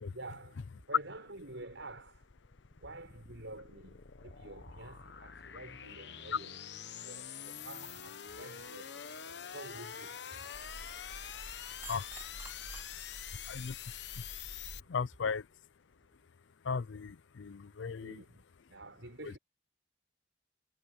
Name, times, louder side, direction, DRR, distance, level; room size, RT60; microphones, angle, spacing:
voice 1, 0.1-2.3 2.8-6.5 7.0-9.1 9.5-10.5 12.6-12.8 14.6-14.8 17.8-19.4, right 2 dB, 90° right, 6.1 m, -49 dB
sound 1, 1.3-14.8, left 8 dB, 65° left, 1.0 m, -46 dB
sound 2, 10.5-14.8, right 2 dB, 10° right, 0.6 m, -50 dB
voice 2, 13.5-14.3 14.9-15.5 16.6-18.2 19.2-19.3, left 5 dB, 85° left, 0.5 m, -37 dB
head